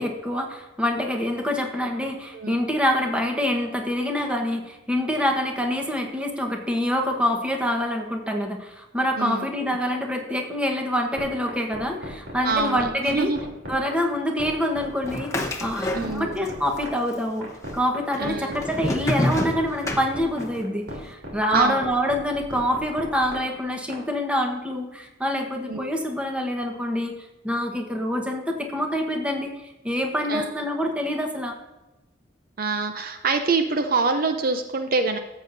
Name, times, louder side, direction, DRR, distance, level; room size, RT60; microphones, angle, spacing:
voice 1, 0.0-13.3 13.7-17.5 17.7-27.1 27.4-29.5 29.8-31.6, equal, 5° right, 2 dB, 1.2 m, -26 dB
voice 2, 9.2-9.8 12.4-13.4 15.9-16.4 18.2-18.5 21.5-21.8 25.7-26.0 30.3-30.5 32.6-35.2, right 4 dB, 50° right, 7 dB, 0.6 m, -25 dB
sound 1, 11.2-24.0, right 1 dB, 75° right, 3.1 m, -37 dB
sound 2, 15.1-16.5 16.8-17.5 18.1-20.6, left 1 dB, 15° left, 0.9 m, -28 dB
13.5 x 8.0 x 2.6 m, 1.1 s
head